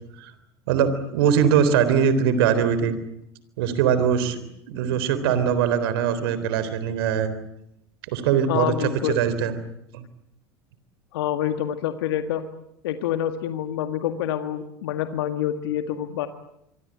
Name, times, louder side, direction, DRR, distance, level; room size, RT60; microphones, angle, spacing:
voice 1, 0.7-3.0 3.6-4.4 4.7-7.3 8.1-9.5 9.9-10.0, right 8 dB, 70° right, 12 dB, 3.8 m, -21 dB
voice 2, 8.5-9.2 11.1-12.4 12.8-16.3, left 11 dB, 75° left, 8 dB, 1.9 m, -27 dB
26.5 x 24.0 x 8.9 m, 0.81 s
hypercardioid pair, 85°, 13 cm